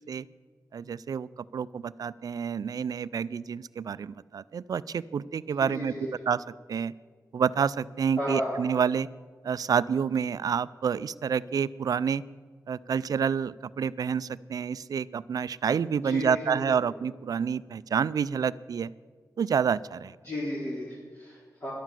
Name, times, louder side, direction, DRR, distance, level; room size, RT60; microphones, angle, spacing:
voice 1, 0.7-5.9 6.3-6.4 6.7-6.9 7.3-9.1 9.4-12.2 12.7-18.9 19.4-20.2, right 7 dB, 70° right, 18 dB, 0.4 m, -28 dB
voice 2, 5.6-6.1 8.2-8.6 16.0-16.7 20.2-21.7, equal, 40° left, -8 dB, 3.9 m, -34 dB
12.5 x 11.0 x 7.6 m, 1.5 s
wide cardioid pair, 105°, 7 cm